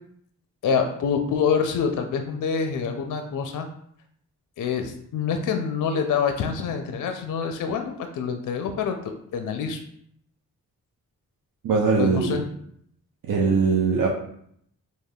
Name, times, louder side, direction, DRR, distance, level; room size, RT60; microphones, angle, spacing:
voice 1, 0.6-3.7 4.6-9.8 12.0-12.4, left 6 dB, 55° left, 5 dB, 0.5 m, -26 dB
voice 2, 11.6-12.4 13.2-14.1, right 4 dB, 65° right, -3 dB, 0.6 m, -21 dB
3.4 x 2.1 x 2.2 m, 0.68 s
supercardioid pair, 45°, 37 cm